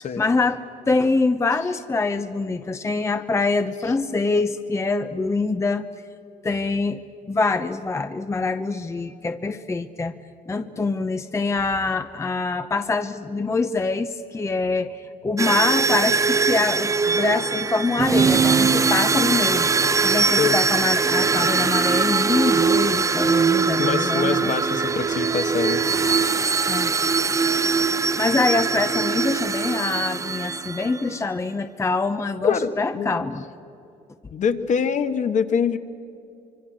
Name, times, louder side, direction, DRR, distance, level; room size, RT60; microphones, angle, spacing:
voice 1, 0.0-5.8 6.4-7.0 7.3-10.1 10.5-19.7 20.0-24.5 26.7-26.9 28.2-33.4, left 3 dB, 15° left, 9 dB, 0.7 m, -24 dB
sound 1, 15.4-31.0, right 5 dB, 20° right, 0.6 m, -21 dB
voice 2, 23.8-25.8 32.4-33.1 34.3-35.8, left 6 dB, 45° left, 9 dB, 1.4 m, -24 dB
25.5 x 24.0 x 7.7 m, 2.6 s
cardioid pair, 110°, 17 cm